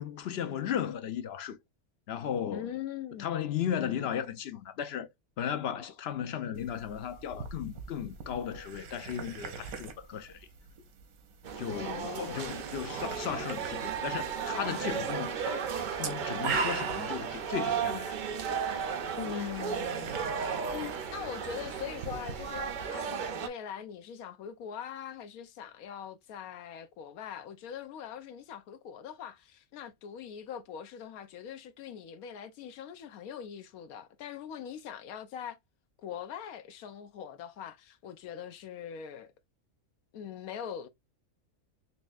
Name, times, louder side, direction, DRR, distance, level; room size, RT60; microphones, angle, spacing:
voice 1, 0.0-1.6 2.1-2.7 3.2-5.1 5.4-10.5 11.6-15.6 15.9-18.2, left 9 dB, 60° left, 0.7 m, -35 dB
voice 2, 2.5-3.4 11.7-12.4 19.2-35.6 36.0-39.3 40.1-40.9, left 8 dB, 85° left, 1.1 m, -42 dB
sound 1, 6.5-22.8, right 5 dB, 90° right, 1.3 m, -42 dB
sound 2, 11.4-23.5, right 7 dB, 65° right, 0.5 m, -35 dB
4.1 x 3.4 x 2.3 m
omnidirectional pair, 1.5 m